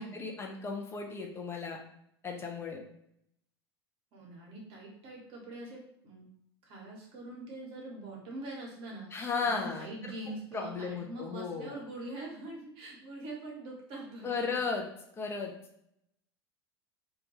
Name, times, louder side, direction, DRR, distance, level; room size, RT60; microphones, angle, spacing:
voice 1, 0.0-1.8 2.2-2.8 9.1-9.9 10.5-11.8 14.2-14.9 15.2-15.5, left 5 dB, 20° left, 2 dB, 0.5 m, -35 dB
voice 2, 4.1-6.3 6.6-14.6, right 2 dB, 40° right, -2 dB, 0.9 m, -44 dB
2.3 x 2.2 x 2.9 m, 0.73 s
figure-of-eight pair, 80°, 14 cm